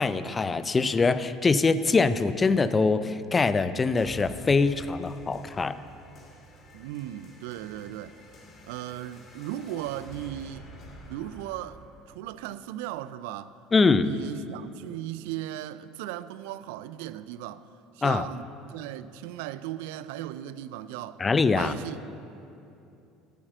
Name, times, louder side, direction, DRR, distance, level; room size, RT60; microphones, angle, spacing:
voice 1, 0.0-5.8 13.7-14.1 18.0-18.2 21.2-21.7, left 4 dB, 25° left, 0.6 m, -23 dB
sound 1, 4.0-13.0, equal, 40° left, 3.1 m, -49 dB
voice 2, 6.7-8.2 8.6-10.7 11.1-11.8 12.1-13.6 14.0-17.7 17.9-21.2 21.6-22.0, right 13 dB, 70° right, 0.4 m, -37 dB
12.5 x 8.8 x 7.5 m
hypercardioid pair, 65°, 0 cm